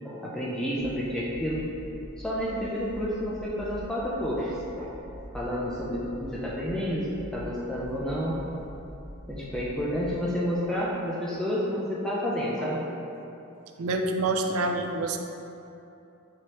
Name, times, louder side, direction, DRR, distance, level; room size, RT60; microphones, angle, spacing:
voice 1, 0.0-1.7 2.2-4.9 5.3-8.4 9.3-12.8, equal, 5° left, -6 dB, 0.4 m, -30 dB
sound 1, 0.8-10.2, equal, 15° right, 1.3 m, -44 dB
voice 2, 13.8-15.2, right 2 dB, 80° right, 4 dB, 0.4 m, -27 dB
4.6 x 3.1 x 2.9 m, 2.8 s
head